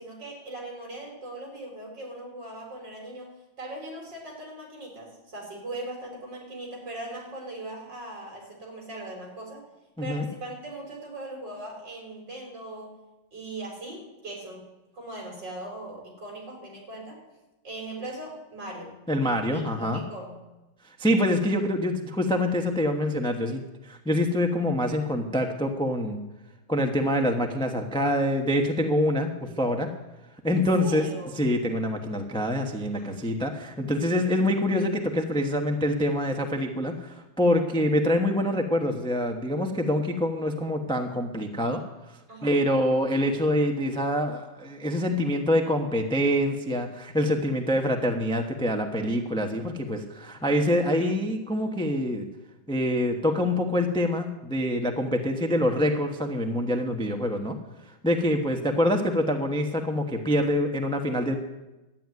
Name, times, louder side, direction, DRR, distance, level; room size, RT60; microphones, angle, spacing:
voice 1, 0.0-3.3 3.6-9.6 10.0-13.0 13.3-14.6 14.9-17.2 17.6-18.9 19.5-20.4 30.5-31.3 32.9-33.2 42.3-42.6, right 1 dB, 60° right, 0 dB, 5.2 m, -39 dB
voice 2, 19.1-20.0 21.0-26.2 26.7-29.9 30.4-31.1 31.4-41.8 42.4-52.3 52.7-57.6 58.0-61.3, left 1 dB, 5° left, 3 dB, 0.8 m, -25 dB
12.5 x 9.2 x 9.5 m, 1.0 s
omnidirectional pair, 2.2 m